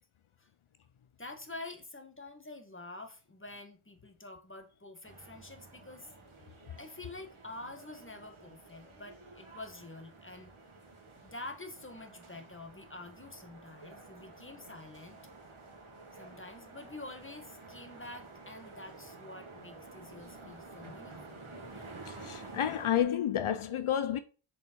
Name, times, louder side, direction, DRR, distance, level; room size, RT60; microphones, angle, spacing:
voice 1, 1.2-6.1 6.8-10.5 11.2-15.3 16.1-21.4, left 2 dB, 25° left, 1.9 m, -47 dB
sound 1, 5.0-23.0, right 3 dB, 85° right, 2.2 m, -51 dB
voice 2, 22.1-24.2, left 10 dB, 80° left, 0.6 m, -30 dB
6.8 x 5.5 x 4.6 m
wide cardioid pair, 45°, 48 cm